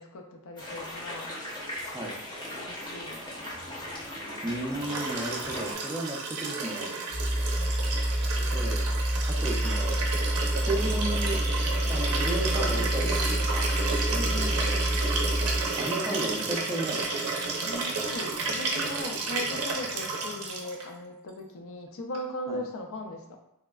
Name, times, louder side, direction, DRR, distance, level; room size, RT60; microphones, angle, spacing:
voice 1, 0.0-1.4 2.5-3.3 7.4-7.7 14.1-14.8 15.9-16.2 17.6-23.4, left 1 dB, 65° left, 3 dB, 0.5 m, -39 dB
sound 1, 0.6-5.7, left 1 dB, 20° left, 0.7 m, -38 dB
voice 2, 4.4-6.9 8.5-8.8 9.3-10.0 10.6-11.4 11.9-13.7 15.8-17.1 22.5-22.6, right 1 dB, 15° right, -1 dB, 0.4 m, -33 dB
Liquid, 4.8-20.9 22.1-22.2, right 3 dB, 75° right, 0.5 m, -31 dB
sound 2, 7.1-15.8, equal, 85° left, 1.1 m, -28 dB
3.4 x 2.1 x 2.3 m, 0.86 s
head